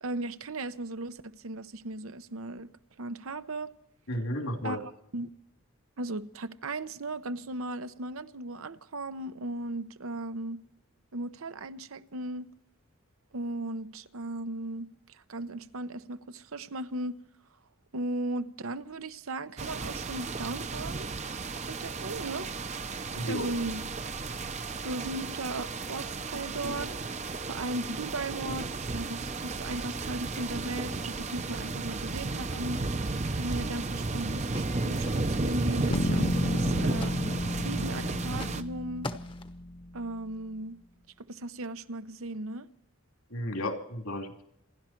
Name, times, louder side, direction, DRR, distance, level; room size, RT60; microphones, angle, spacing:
voice 1, 0.0-2.7 3.0-3.7 4.6-4.8 5.1-5.3 6.0-10.6 11.1-12.5 13.3-17.2 17.9-21.1 21.7-22.5 23.1-23.8 24.8-32.8 33.3-37.2 37.6-39.1 39.9-40.8 41.2-42.7, right 2 dB, 75° right, 0.9 m, -37 dB
voice 2, 4.1-4.8 23.2-23.5 43.3-44.4, left 1 dB, 80° left, 3.3 m, -33 dB
sound 1, 19.6-38.6, right 3 dB, 30° right, 0.7 m, -33 dB
sound 2, 34.5-35.5 35.7-36.3 36.6-37.5 38.3-38.7 39.0-39.6, left 2 dB, 25° left, 0.9 m, -43 dB
sound 3, 35.9-39.9, left 1 dB, 60° left, 1.2 m, -31 dB
28.0 x 11.5 x 4.5 m
head